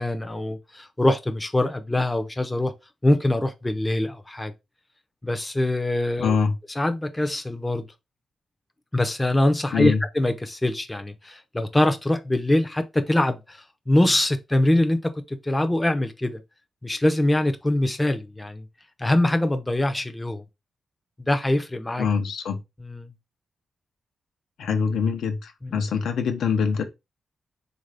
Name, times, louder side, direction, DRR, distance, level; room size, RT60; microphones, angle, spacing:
voice 1, 0.0-2.7 3.0-4.5 5.2-6.3 6.8-7.8 8.9-13.6 13.9-16.4 16.8-18.7 19.0-20.4 21.2-22.1 22.8-23.1 25.6-25.8, left 1 dB, 10° left, 0.4 m, -23 dB
voice 2, 6.2-6.5 9.7-10.0 22.0-22.6 24.6-26.8, left 6 dB, 85° left, 0.6 m, -24 dB
3.6 x 2.5 x 3.3 m
cardioid pair, 115°, 0 cm